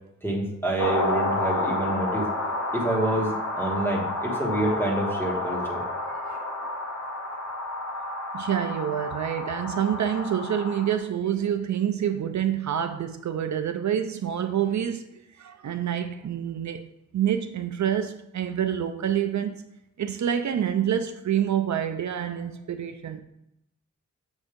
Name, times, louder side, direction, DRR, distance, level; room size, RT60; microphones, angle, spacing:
voice 1, 0.2-2.3 2.7-5.8, right 1 dB, 5° left, 1.3 m, -27 dB
sound 1, 0.8-11.0, left 2 dB, 65° left, 0.9 m, -30 dB
voice 2, 8.3-16.8 17.1-19.6 20.0-23.2, right 9 dB, 70° right, 0.4 m, -27 dB
7.1 x 2.7 x 5.0 m
wide cardioid pair, 140°, 30 cm